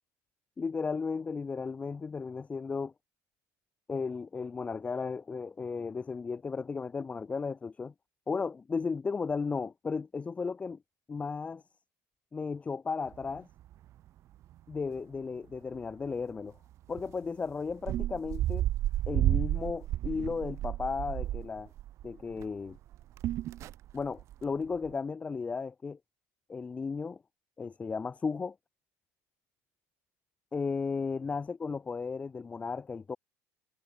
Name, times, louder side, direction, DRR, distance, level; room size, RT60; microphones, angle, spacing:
voice 1, 0.6-2.9 3.9-7.9 8.3-10.8 11.1-11.6 12.3-13.5 14.7-16.6 16.9-18.6 19.1-21.7 22.0-22.8 23.9-26.0 26.5-27.2 27.6-28.5 30.5-33.2, left 5 dB, 20° left, 1.1 m, -35 dB
sound 1, 13.1-13.8 14.1-14.2 14.4-15.0 15.5-15.8 16.1-16.2 16.9-17.1 17.7-22.5 22.8-24.4 24.8-24.9, right 13 dB, 50° right, 0.5 m, -32 dB
cardioid pair, 120°, 7 cm